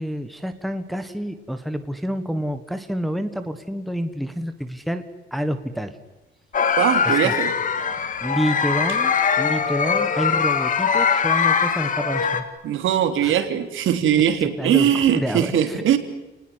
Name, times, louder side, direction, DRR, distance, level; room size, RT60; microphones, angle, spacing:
voice 1, 0.0-5.0 5.3-6.0 7.0-7.3 8.2-12.4 13.2-13.4 14.6-16.0, equal, ahead, 8 dB, 1.5 m, -28 dB
sound 1, 6.5-12.4, left 6 dB, 40° left, 2.3 m, -21 dB
voice 2, 6.8-7.5 12.6-16.0, right 9 dB, 70° right, 8 dB, 3.5 m, -20 dB
29.5 x 19.5 x 9.8 m, 1.1 s
cardioid pair, 175°, 21 cm